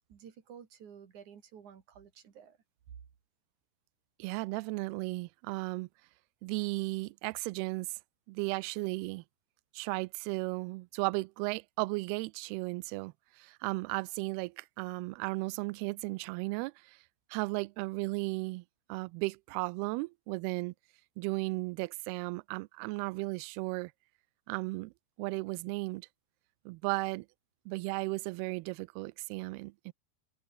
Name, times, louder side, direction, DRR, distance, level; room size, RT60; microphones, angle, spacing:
voice 1, 0.1-2.6, right 8 dB, 50° right, 3.5 m, -52 dB
voice 2, 4.2-5.9 6.4-8.0 8.3-9.2 9.7-17.0 17.3-18.6 18.9-20.7 21.2-23.9 24.5-24.9 25.2-26.1 26.7-27.3 27.7-29.9, right 24 dB, 80° right, 2.4 m, -35 dB
omnidirectional pair, 4.9 m